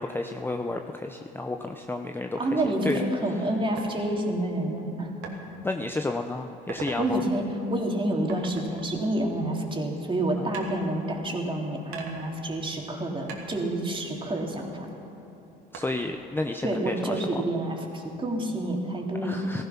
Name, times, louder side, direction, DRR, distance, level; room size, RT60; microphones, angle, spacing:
voice 1, 0.0-3.0 5.6-7.2 10.4-10.5 15.7-17.4 19.2-19.6, left 2 dB, 10° left, 4 dB, 0.7 m, -31 dB
voice 2, 2.4-5.1 7.0-14.9 16.6-19.4, right 1 dB, 25° right, 0 dB, 3.0 m, -28 dB
sound 1, 3.8-3.9 5.2-5.4 5.9-6.2 6.5-7.0 8.3-9.8 10.5-11.4 11.9-13.0 13.3-14.9 15.7-16.3, right 5 dB, 70° right, 2.4 m, -42 dB
15.5 x 14.5 x 5.9 m, 2.9 s
supercardioid pair, 75°, 21 cm